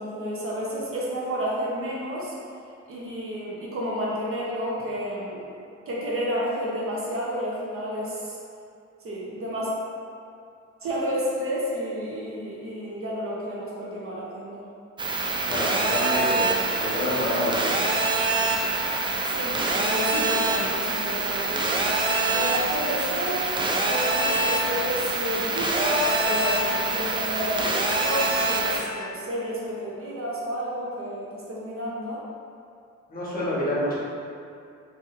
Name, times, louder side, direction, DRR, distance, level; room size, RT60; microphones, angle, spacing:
voice 1, 0.0-2.3 2.9-5.5 5.9-8.4 9.0-9.7 10.8-14.7 19.3-21.7 22.3-23.4 23.8-32.2, equal, 45° right, -5 dB, 0.8 m, -31 dB
sound 1, 15.0-28.8, right 2 dB, 15° right, 0.4 m, -25 dB
voice 2, 15.5-17.7 33.1-34.0, left 1 dB, 30° left, -8 dB, 1.2 m, -28 dB
3.9 x 2.8 x 2.5 m, 2.4 s
cardioid pair, 90°, 30 cm